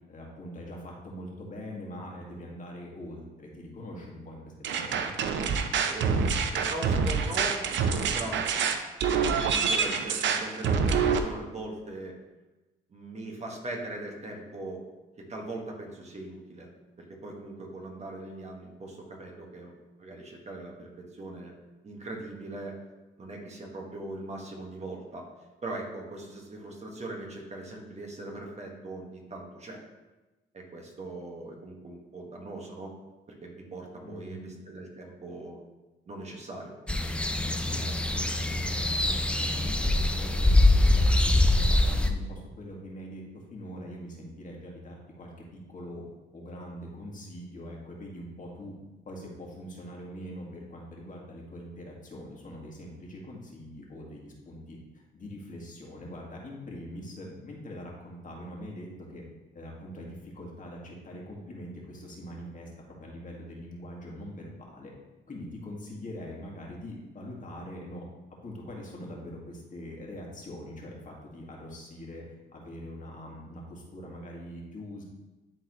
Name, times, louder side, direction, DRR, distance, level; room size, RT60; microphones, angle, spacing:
voice 1, 0.1-5.1 34.0-34.5 37.4-46.1 46.3-48.7 49.0-59.2 59.5-62.7 63.0-64.9 65.3-68.1 68.4-72.2 72.5-75.0, equal, 40° left, -2 dB, 1.9 m, -43 dB
sound 1, 4.6-11.2, right 5 dB, 70° right, 0.7 m, -26 dB
voice 2, 6.5-8.7 9.1-12.1 12.9-14.8 15.2-16.7 17.0-19.7 20.0-21.5 21.8-22.8 23.2-25.3 25.6-29.8 30.5-32.9 33.4-35.6 36.1-36.7, right 2 dB, 35° right, 0 dB, 1.6 m, -40 dB
sound 2, 36.9-42.1, left 2 dB, 5° left, 0.5 m, -23 dB
11.0 x 4.0 x 3.1 m, 1.1 s
cardioid pair, 90°, 20 cm